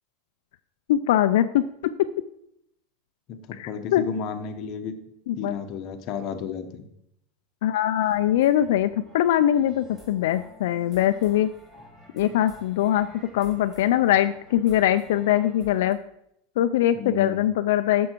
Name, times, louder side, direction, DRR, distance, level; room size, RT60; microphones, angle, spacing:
voice 1, 0.9-2.1 3.5-4.0 5.3-5.5 7.6-11.5 12.1-13.1 13.3-16.0 16.6-18.1, left 12 dB, 65° left, 10 dB, 0.4 m, -22 dB
voice 2, 3.3-4.9 5.4-6.8 16.9-17.4, left 7 dB, 30° left, 7 dB, 1.0 m, -32 dB
sound 1, 8.0-15.9, left 1 dB, 10° right, 1.4 m, -49 dB
11.0 x 7.1 x 4.5 m, 0.76 s
supercardioid pair, 175°, 0 cm